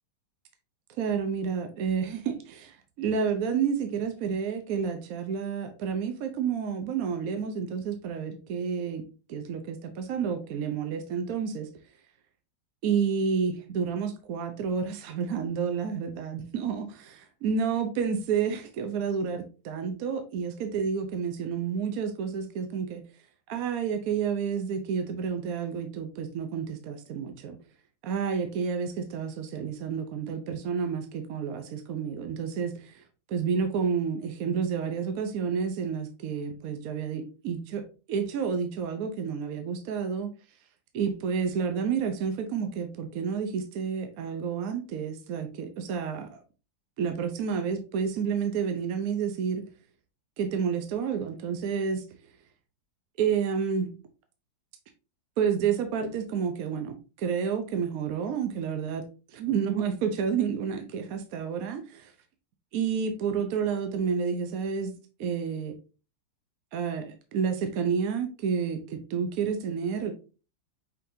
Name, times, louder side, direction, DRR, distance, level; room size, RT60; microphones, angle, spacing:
voice 1, 1.0-9.0 9.3-11.7 12.8-16.9 17.4-23.0 23.5-27.6 28.0-40.3 40.9-46.4 47.0-49.6 50.4-52.0 53.2-53.9 55.4-59.0 59.3-62.1 62.7-64.9 65.2-65.7 66.7-70.1, right 6 dB, 70° right, 7 dB, 0.8 m, -30 dB
5.5 x 3.7 x 2.6 m, 0.34 s
omnidirectional pair, 2.1 m